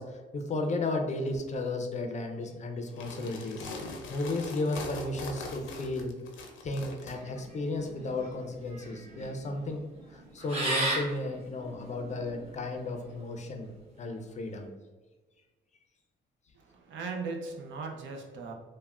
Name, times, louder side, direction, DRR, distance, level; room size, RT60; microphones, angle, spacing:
voice 1, 0.0-6.1 6.6-9.8 10.1-13.7 14.0-14.7, left 2 dB, 35° left, 4 dB, 0.5 m, -34 dB
sound 1, 2.9-7.2, left 3 dB, 80° left, 0.5 m, -41 dB
sound 2, 7.1-12.9, right 1 dB, 30° right, 1.2 m, -36 dB
voice 2, 16.5-18.5, right 4 dB, 70° right, 2 dB, 0.6 m, -38 dB
3.3 x 2.1 x 2.3 m, 1.2 s
cardioid pair, 90°, 20 cm